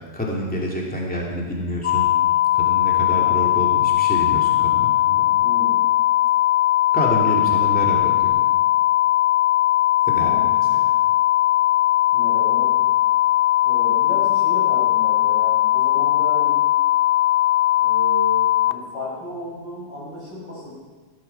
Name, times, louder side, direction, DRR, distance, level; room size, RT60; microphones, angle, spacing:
voice 1, 0.1-2.1 2.5-5.3 6.9-8.4 10.1-10.6, equal, 5° left, -2 dB, 2.7 m, -27 dB
sound 1, 1.8-18.7, left 14 dB, 60° left, 0.5 m, -19 dB
voice 2, 5.4-5.8 10.2-10.5 12.1-12.7 13.6-16.6 17.8-20.7, left 1 dB, 85° left, -4 dB, 6.0 m, -33 dB
16.5 x 13.0 x 5.8 m, 1.3 s
omnidirectional pair, 1.9 m